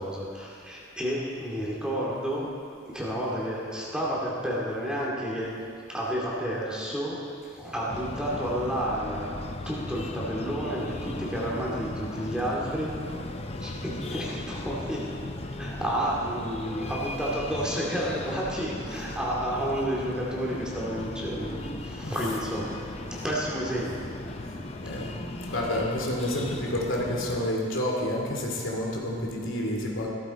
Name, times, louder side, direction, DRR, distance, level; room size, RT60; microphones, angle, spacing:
voice 1, 0.0-2.5 2.9-5.5 5.9-7.2 7.5-9.3 9.7-12.9 13.6-15.0 15.5-22.8 23.2-24.0, equal, 5° right, -6 dB, 2.2 m, -30 dB
Breathing, 7.9-27.5, left 2 dB, 30° left, 0.7 m, -37 dB
voice 2, 24.8-30.1, left 1 dB, 80° left, -1 dB, 2.4 m, -29 dB
16.5 x 13.5 x 4.1 m, 2.5 s
head